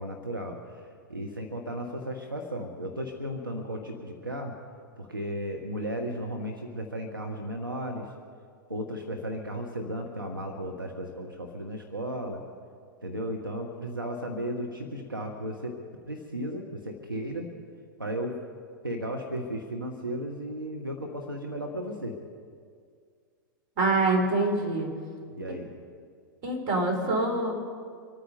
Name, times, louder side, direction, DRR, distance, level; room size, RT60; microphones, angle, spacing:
voice 1, 0.0-4.6 5.0-8.1 8.7-12.4 13.0-15.8 16.1-17.5 18.0-18.4 18.8-22.2 25.3-25.7, equal, 90° right, 2 dB, 1.3 m, -35 dB
voice 2, 23.8-24.9 26.4-27.5, right 2 dB, 40° right, 1 dB, 3.8 m, -25 dB
25.5 x 9.1 x 5.4 m, 2.1 s
figure-of-eight pair, 100°, 11 cm